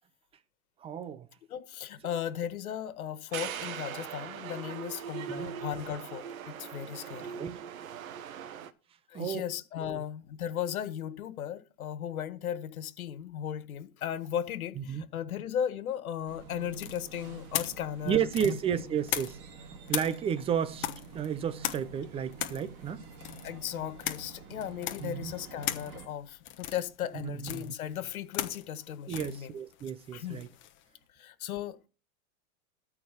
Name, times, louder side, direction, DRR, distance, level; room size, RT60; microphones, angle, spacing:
voice 1, 0.8-1.3 5.2-5.5 7.0-7.6 9.1-9.5 9.8-10.0 14.8-15.0 18.0-19.4 19.7-20.9 21.1-23.0 25.0-25.3 27.1-27.7 29.1-30.5, right 8 dB, 15° right, 0.6 m, -33 dB
voice 2, 1.5-7.4 9.1-18.6 23.4-29.5 30.1-30.4 31.1-31.9, left 9 dB, 85° left, 1.7 m, -36 dB
sound 1, 3.3-8.7, right 8 dB, 75° right, 1.4 m, -40 dB
sound 2, 16.3-26.1, right 5 dB, 40° right, 2.3 m, -48 dB
sound 3, 16.7-19.6 19.9-30.8, left 12 dB, 30° left, 1.2 m, -38 dB
13.0 x 4.7 x 6.9 m
hypercardioid pair, 140°, 42 cm